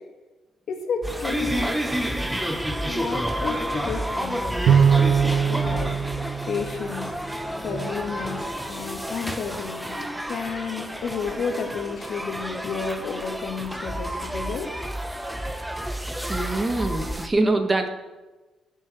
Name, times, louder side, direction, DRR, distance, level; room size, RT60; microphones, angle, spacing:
voice 1, 0.7-1.7 2.8-5.9 6.5-7.1 7.6-8.4 8.7-14.7, left 5 dB, 65° left, 2 dB, 2.5 m, -31 dB
sound 1, 1.0-17.3, equal, 5° right, 1.0 m, -30 dB
Bowed string instrument, 4.7-7.3, right 7 dB, 80° right, 0.6 m, -21 dB
voice 2, 16.3-17.9, right 2 dB, 25° right, 5 dB, 1.7 m, -24 dB
20.0 x 7.9 x 4.7 m, 1.2 s
cardioid pair, 90°, 0 cm